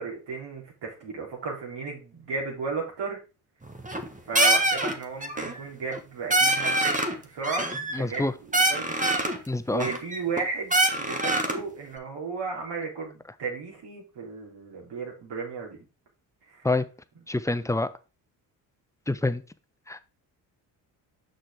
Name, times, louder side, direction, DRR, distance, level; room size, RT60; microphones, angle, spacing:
voice 1, 0.0-3.2 4.3-6.9 7.2-9.2 9.7-15.8 17.6-17.9, right 4 dB, 60° right, -1 dB, 3.8 m, -34 dB
sound 1, 3.7-4.1 4.3-4.9 5.2-5.6 5.9-6.0 6.3-7.1 7.4-8.2 8.5-9.4 9.8-10.4 10.7-11.6, right 1 dB, 15° right, 1.7 m, -24 dB
voice 2, 7.9-8.3 9.5-9.9 16.6-16.8 17.3-17.9 19.1-19.4 19.9-20.0, left 2 dB, 5° left, 12 dB, 0.7 m, -26 dB
6.5 x 6.3 x 3.6 m, 0.31 s
hypercardioid pair, 50°, 48 cm